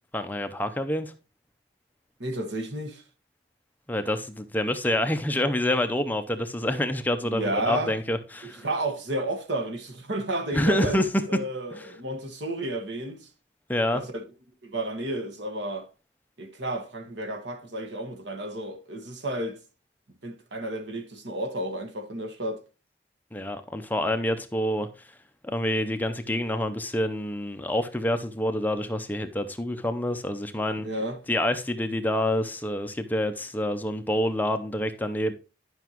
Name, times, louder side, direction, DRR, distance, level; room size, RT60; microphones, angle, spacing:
voice 1, 0.1-1.1 3.9-8.7 10.5-11.1 11.7-11.9 13.7-14.0 23.3-25.2 25.4-30.9 31.3-35.3, left 1 dB, 10° left, 0.6 m, -27 dB
voice 2, 2.2-3.0 7.2-7.9 8.4-11.0 11.3-13.3 13.9-14.2 14.6-15.9 16.4-19.6 20.2-22.6 30.8-31.2, right 1 dB, 85° right, 1.5 m, -32 dB
11.5 x 5.8 x 3.0 m
head